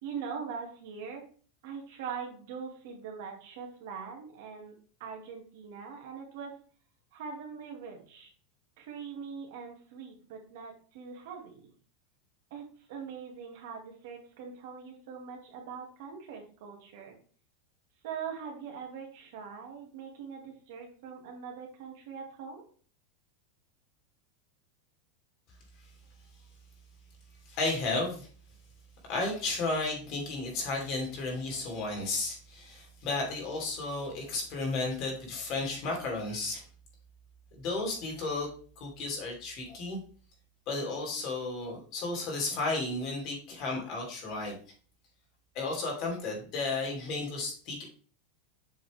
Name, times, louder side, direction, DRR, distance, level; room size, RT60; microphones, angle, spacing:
voice 1, 0.0-1.2 1.6-4.7 5.0-6.5 7.1-8.3 8.8-11.7 12.5-12.6 12.9-17.2 18.0-22.6, right 6 dB, 55° right, 1 dB, 2.1 m, -42 dB
voice 2, 27.5-28.3 29.1-36.6 37.5-38.5 38.8-40.0 40.7-44.6 45.5-47.8, left 3 dB, 35° left, 0 dB, 2.7 m, -33 dB
7.5 x 5.0 x 3.5 m, 0.42 s
supercardioid pair, 175°, 0 cm